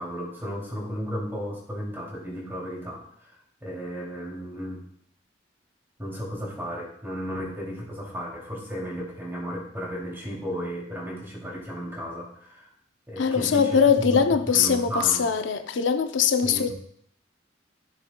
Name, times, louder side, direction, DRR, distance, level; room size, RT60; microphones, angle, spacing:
voice 1, 0.0-3.3 3.6-4.8 6.0-12.7 13.1-14.2 14.5-15.3 16.4-16.7, equal, 15° right, 2.6 m, -34 dB
voice 2, 13.2-16.7, left 6 dB, 80° left, 0.6 m, -22 dB
13.0 x 6.8 x 2.2 m
head